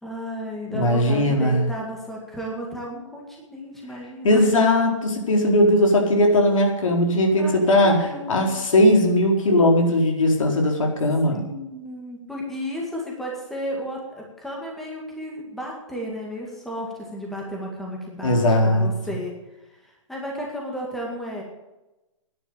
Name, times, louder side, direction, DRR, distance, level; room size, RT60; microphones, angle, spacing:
voice 1, 0.0-4.6 7.4-8.6 11.2-18.4 18.6-19.3 19.8-21.4, equal, ahead, -2 dB, 2.0 m, -33 dB
voice 2, 0.7-1.7 4.2-11.4 18.2-18.9, left 1 dB, 80° left, 1 dB, 4.4 m, -19 dB
10.5 x 10.5 x 8.7 m, 1.0 s
hypercardioid pair, 165°, 17 cm